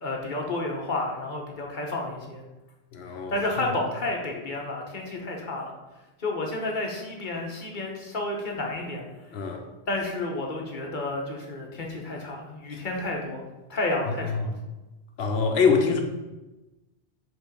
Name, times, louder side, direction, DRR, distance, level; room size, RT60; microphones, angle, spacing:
voice 1, 0.0-2.4 3.3-5.8 6.2-9.0 9.9-13.4 13.7-14.6, left 2 dB, 50° left, 0 dB, 1.2 m, -31 dB
voice 2, 2.9-3.3 9.3-9.6 14.2-14.5 15.2-16.0, left 5 dB, 85° left, 4 dB, 1.1 m, -24 dB
5.2 x 3.8 x 5.3 m, 1.1 s
omnidirectional pair, 1.0 m